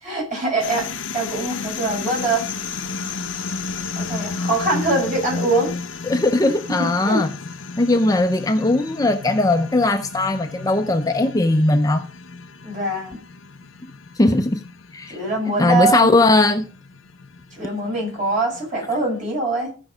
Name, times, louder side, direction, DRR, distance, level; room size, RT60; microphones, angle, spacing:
voice 1, 0.0-2.5 3.9-5.7 6.8-7.2 12.6-13.2 15.1-16.1 17.6-19.7, right 2 dB, 40° right, 6.7 m, -23 dB
sound 1, 0.6-19.1, left 4 dB, 85° left, 0.9 m, -33 dB
voice 2, 6.1-7.3 7.8-12.1 14.2-14.6 14.9-15.2 15.6-16.7, left 2 dB, 20° left, 0.6 m, -18 dB
15.0 x 5.4 x 5.1 m
head